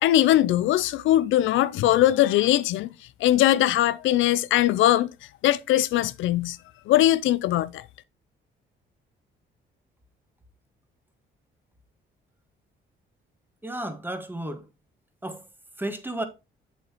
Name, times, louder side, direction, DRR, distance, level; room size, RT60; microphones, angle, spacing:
voice 1, 0.0-2.9 3.2-5.1 5.4-6.6 6.9-7.8, left 13 dB, 80° left, 0.4 m, -21 dB
voice 2, 13.6-14.6 15.2-15.4 15.8-16.2, right 1 dB, 10° right, 1.6 m, -32 dB
7.9 x 7.2 x 3.0 m
cardioid pair, 90°, 20 cm